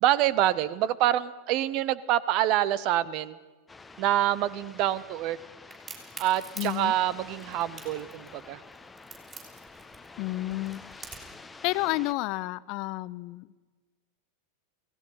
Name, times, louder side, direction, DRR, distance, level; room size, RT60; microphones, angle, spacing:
voice 1, 0.0-3.4 4.0-5.4 6.2-8.6, right 13 dB, 40° right, 19 dB, 1.0 m, -26 dB
sound 1, 3.7-12.1, left 3 dB, 10° left, 1.1 m, -48 dB
Crack, 5.7-11.4, right 5 dB, 25° right, 6.1 m, -45 dB
voice 2, 6.6-6.9 10.2-10.8 11.6-13.5, left 19 dB, 40° left, 18 dB, 0.7 m, -30 dB
29.0 x 18.0 x 5.8 m, 1.3 s
figure-of-eight pair, 90°, 0 cm